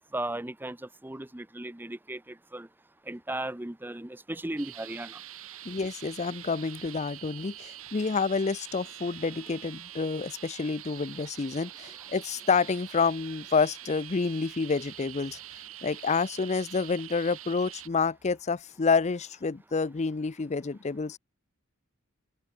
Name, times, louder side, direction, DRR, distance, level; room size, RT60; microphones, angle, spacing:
voice 1, 0.1-2.7 3.1-5.2, right 1 dB, 10° right, 0.7 m, -36 dB
sound 1, 4.6-17.9, right 13 dB, 70° right, 6.5 m, -45 dB
voice 2, 5.7-15.4 15.8-21.2, left 4 dB, 30° left, 0.5 m, -28 dB
open air
head